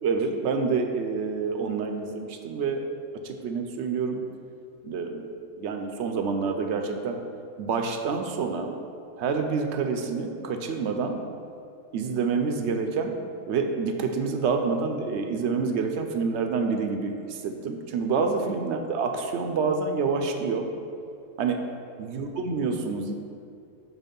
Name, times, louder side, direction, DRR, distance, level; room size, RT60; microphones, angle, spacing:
voice 1, 0.0-2.8 3.2-4.2 4.8-5.3 5.6-7.2 7.6-8.7 9.2-11.2 11.9-13.1 13.5-20.7 21.4-21.6 22.0-23.1, right 5 dB, 65° right, 5 dB, 0.7 m, -27 dB
6.3 x 4.1 x 5.2 m, 2.6 s
omnidirectional pair, 1.5 m